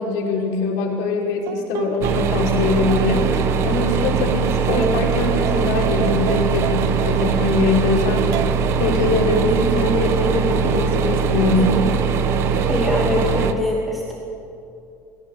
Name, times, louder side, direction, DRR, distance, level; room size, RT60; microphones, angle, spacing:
voice 1, 0.0-8.4 8.8-11.9, left 3 dB, 85° left, -1 dB, 5.1 m, -22 dB
sound 1, 1.5-7.6 8.3-8.6 9.8-12.7, right 12 dB, 60° right, 0.9 m, -32 dB
sound 2, 2.0-13.5, right 6 dB, 45° right, 1.3 m, -21 dB
voice 2, 12.7-14.1, left 1 dB, ahead, -4 dB, 2.6 m, -22 dB
21.0 x 18.5 x 8.6 m, 2.6 s
cardioid pair, 175°, 6 cm